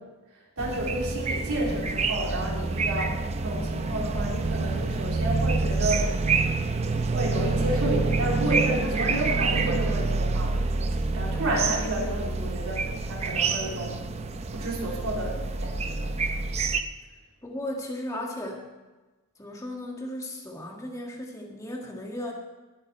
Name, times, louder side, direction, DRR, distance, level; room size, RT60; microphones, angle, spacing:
sound 1, 0.6-16.8, right 3 dB, 30° right, 0.6 m, -27 dB
voice 1, 0.6-6.1 7.1-10.8 11.1-14.0 14.5-16.2, right 1 dB, 90° right, -3 dB, 3.5 m, -31 dB
voice 2, 17.4-18.7 19.4-22.3, left 1 dB, 15° left, 0 dB, 1.7 m, -35 dB
19.0 x 8.0 x 4.3 m, 1.2 s
head